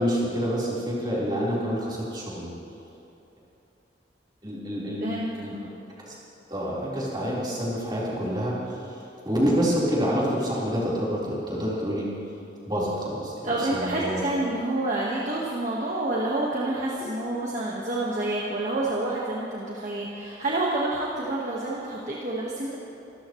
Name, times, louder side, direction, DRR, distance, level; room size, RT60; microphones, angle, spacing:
voice 1, 0.0-2.5 4.4-5.1 5.4-5.5 6.0-6.2 6.5-8.8 9.2-12.1 12.7-14.2, equal, 25° right, -7 dB, 4.2 m, -27 dB
voice 2, 5.0-5.7 13.4-22.8, right 2 dB, 40° right, -5 dB, 1.6 m, -28 dB
26.0 x 14.0 x 3.2 m, 3.0 s
head